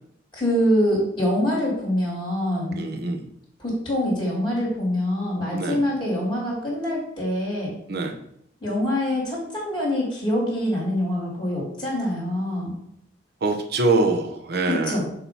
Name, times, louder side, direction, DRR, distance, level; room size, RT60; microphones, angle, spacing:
voice 1, 0.3-2.8 3.6-7.7 8.6-12.7 14.6-15.0, left 1 dB, 20° left, -7 dB, 2.8 m, -25 dB
voice 2, 2.8-3.3 5.5-5.8 7.9-8.2 13.4-15.0, right 3 dB, 60° right, 4 dB, 0.8 m, -24 dB
6.9 x 3.0 x 5.7 m, 0.72 s
head